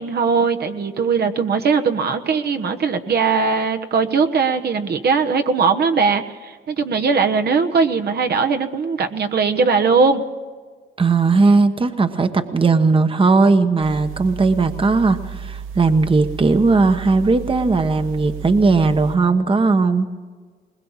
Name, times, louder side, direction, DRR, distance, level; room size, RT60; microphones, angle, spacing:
voice 1, 0.0-10.2, right 5 dB, 55° right, 6 dB, 1.2 m, -19 dB
voice 2, 11.0-20.1, right 3 dB, 25° right, 9 dB, 1.1 m, -17 dB
sound 1, 13.8-19.2, right 7 dB, 90° right, 0.7 m, -33 dB
21.0 x 20.5 x 7.3 m, 1.5 s
cardioid pair, 90°, 20 cm